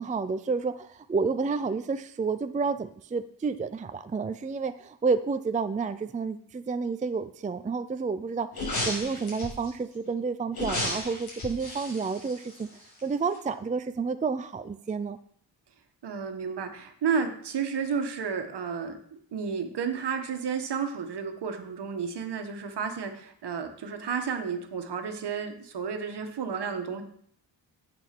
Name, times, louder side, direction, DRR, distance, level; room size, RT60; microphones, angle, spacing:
voice 1, 0.0-8.5 8.8-12.7 13.0-15.2, right 4 dB, 20° right, 10 dB, 0.4 m, -30 dB
sound 1, 8.5-9.7 10.5-13.0 13.3-13.4, left 1 dB, 60° left, 5.6 m, -33 dB
voice 2, 16.0-27.0, right 6 dB, 70° right, 6 dB, 1.6 m, -32 dB
10.5 x 8.6 x 6.0 m, 0.65 s
wide cardioid pair, 145°, 42 cm